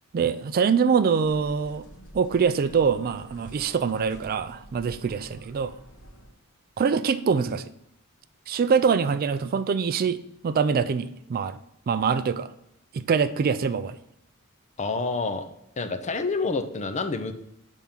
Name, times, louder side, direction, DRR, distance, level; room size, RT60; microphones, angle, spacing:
voice 1, 0.1-1.8 2.1-5.7 6.8-7.6 8.5-10.2 10.4-11.6 11.9-12.5 12.9-14.0, right 6 dB, 45° right, 13 dB, 0.3 m, -24 dB
sound 1, 1.2-6.3, right 1 dB, 60° left, 1.5 m, -48 dB
voice 2, 14.8-15.5 15.8-17.3, left 3 dB, 35° left, 9 dB, 0.6 m, -28 dB
7.0 x 3.6 x 5.7 m, 0.79 s
head